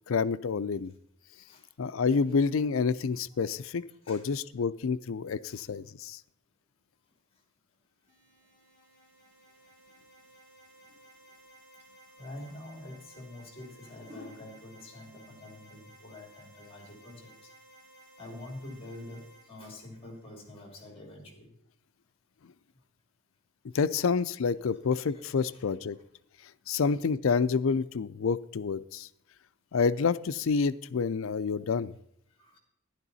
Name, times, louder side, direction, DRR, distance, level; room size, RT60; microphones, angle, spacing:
voice 1, 0.1-0.9 1.8-6.2 23.7-26.0 26.7-29.1 29.7-31.9, left 5 dB, 75° left, 16 dB, 0.4 m, -28 dB
voice 2, 3.9-4.3 5.5-5.6 12.2-17.3 18.2-21.5 24.0-24.1 25.1-25.6 25.9-26.0 31.5-31.6 32.4-32.6, left 1 dB, 30° left, 3 dB, 2.8 m, -46 dB
sound 1, 8.1-20.8, right 1 dB, 40° right, 3.9 m, -57 dB
12.0 x 11.0 x 4.1 m, 0.71 s
head